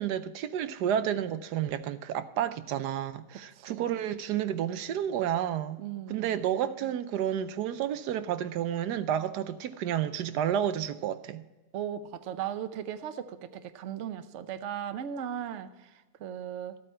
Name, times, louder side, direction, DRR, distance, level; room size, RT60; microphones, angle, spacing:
voice 1, 0.0-5.8 6.1-11.4, right 10 dB, 85° right, 1.2 m, -30 dB
voice 2, 3.5-3.9 5.8-6.5 11.7-16.8, right 9 dB, 55° right, 1.0 m, -37 dB
14.5 x 8.6 x 4.4 m
omnidirectional pair, 1.7 m